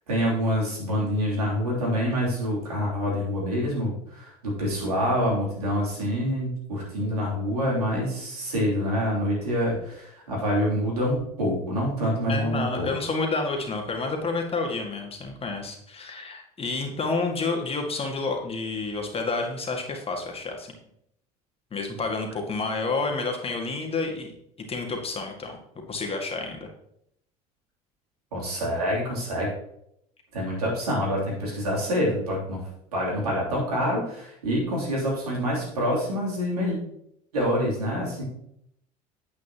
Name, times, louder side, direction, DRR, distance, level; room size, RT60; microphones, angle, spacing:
voice 1, 0.1-12.9 28.3-29.5 30.3-32.6 32.9-36.8 37.3-38.2, equal, 85° right, -4 dB, 3.2 m, -26 dB
voice 2, 12.3-20.7 21.7-24.3 24.7-25.6 25.9-26.7, left 3 dB, 30° left, 2 dB, 2.0 m, -29 dB
9.3 x 8.3 x 3.0 m, 0.75 s
hypercardioid pair, 65°, 19 cm